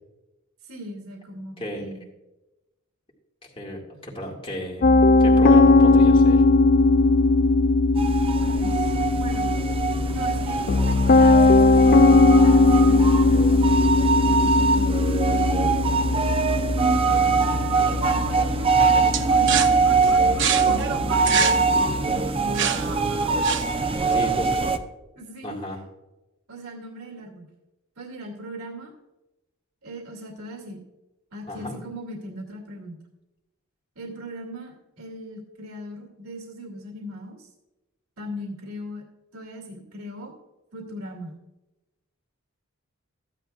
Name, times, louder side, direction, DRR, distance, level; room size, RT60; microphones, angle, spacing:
voice 1, 0.6-2.0 8.4-9.5 10.1-13.4 14.2-15.7 17.8-23.3 24.3-24.6 25.2-25.6 26.5-27.5 28.0-28.9 29.8-30.8 31.3-33.0 34.0-37.5 38.2-39.0 39.3-40.3 40.7-41.3, equal, 90° right, 1 dB, 2.4 m, -38 dB
voice 2, 3.4-4.9 5.2-6.4 16.8-17.6 24.1-24.7 25.4-25.8 31.5-31.8, equal, 25° left, -2 dB, 2.0 m, -34 dB
Piano, 4.8-21.9, left 2 dB, 40° left, 0.4 m, -19 dB
sound 1, 8.0-24.8, right 4 dB, 25° right, 0.6 m, -23 dB
sound 2, 19.1-24.0, right 8 dB, 60° right, 0.8 m, -27 dB
14.5 x 10.5 x 2.4 m, 1.0 s
head